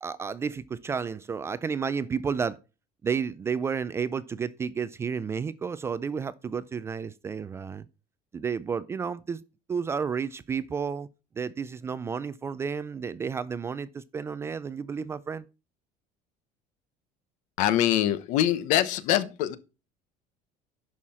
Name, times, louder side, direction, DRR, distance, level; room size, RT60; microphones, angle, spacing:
voice 1, 0.0-2.6 3.0-7.9 8.3-9.4 9.7-11.1 11.4-15.5, right 6 dB, 20° right, 0.3 m, -31 dB
voice 2, 17.6-19.6, left 12 dB, 60° left, 1.0 m, -24 dB
11.0 x 5.7 x 4.2 m
cardioid pair, 165°, 15 cm